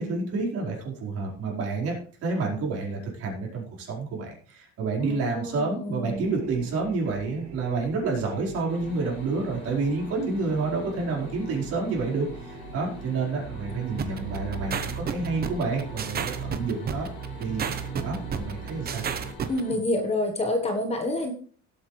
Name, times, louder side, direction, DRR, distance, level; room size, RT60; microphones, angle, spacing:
voice 1, 0.0-17.1 17.4-19.0 19.7-19.8, right 3 dB, 50° right, -2 dB, 5.0 m, -29 dB
voice 2, 5.0-6.3 19.5-21.3, left 1 dB, 20° left, 4 dB, 1.4 m, -28 dB
sound 1, 6.0-19.3, right 6 dB, 75° right, 5.0 m, -40 dB
sound 2, 8.7-19.8, left 4 dB, 35° left, 3.1 m, -45 dB
sound 3, 14.0-19.6, right 7 dB, 30° right, 1.0 m, -31 dB
18.0 x 8.4 x 3.4 m, 0.42 s
cardioid pair, 160°, 31 cm